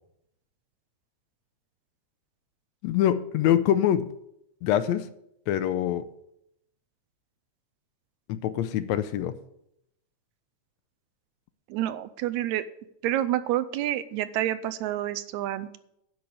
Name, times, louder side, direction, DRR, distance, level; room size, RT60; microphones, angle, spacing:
voice 1, 2.8-4.1 4.6-5.1 5.5-6.1 8.3-9.4, left 11 dB, 75° left, 12 dB, 1.8 m, -24 dB
voice 2, 11.7-12.7 13.0-15.8, right 13 dB, 85° right, 14 dB, 1.9 m, -28 dB
10.0 x 6.2 x 8.1 m, 0.77 s
omnidirectional pair, 3.4 m